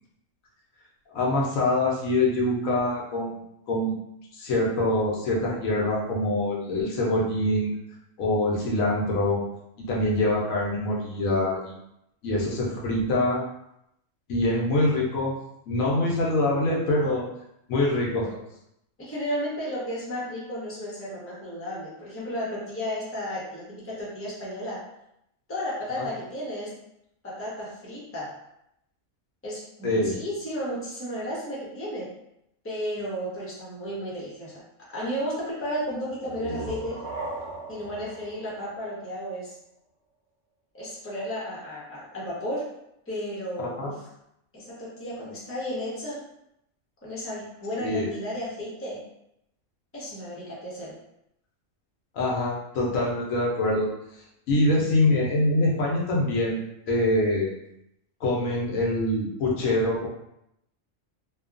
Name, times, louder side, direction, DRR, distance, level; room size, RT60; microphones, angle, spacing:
voice 1, 1.1-4.0 4.3-7.7 8.2-9.4 9.8-11.8 12.2-13.4 14.3-15.3 15.7-17.3 17.7-18.4 26.0-26.1 29.8-30.2 43.6-43.9 47.8-48.1 52.1-53.9 54.5-56.6 56.9-57.5 58.2-60.1, left 1 dB, 80° left, -3 dB, 1.1 m, -24 dB
voice 2, 19.0-24.8 25.5-26.7 27.2-28.4 29.4-32.1 32.6-34.6 34.9-37.0 37.7-39.5 40.7-42.7 43.1-44.0 44.5-46.2 47.0-49.0 49.9-50.9 54.5-54.9, equal, 10° left, -7 dB, 0.7 m, -33 dB
sound 1, 36.1-39.7, right 2 dB, 85° right, 1.0 m, -38 dB
2.8 x 2.3 x 2.4 m, 0.80 s
omnidirectional pair, 1.4 m